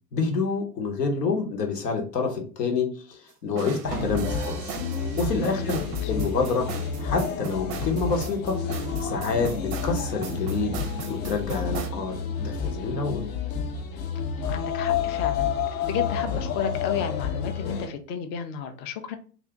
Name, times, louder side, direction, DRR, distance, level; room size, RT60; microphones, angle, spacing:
voice 1, 0.1-4.6 5.2-5.8 6.1-6.7 7.0-8.6 9.0-10.8 11.1-13.2, left 4 dB, 85° left, 3 dB, 1.1 m, -27 dB
sound 1, 3.6-11.9, right 6 dB, 35° right, 0.5 m, -37 dB
sound 2, 3.9-17.9, left 6 dB, 60° left, 0.7 m, -30 dB
voice 2, 5.4-6.1 14.5-15.5 15.9-19.2, left 6 dB, 25° left, 8 dB, 0.4 m, -33 dB
2.7 x 2.5 x 3.4 m, 0.39 s
hypercardioid pair, 100°, 47 cm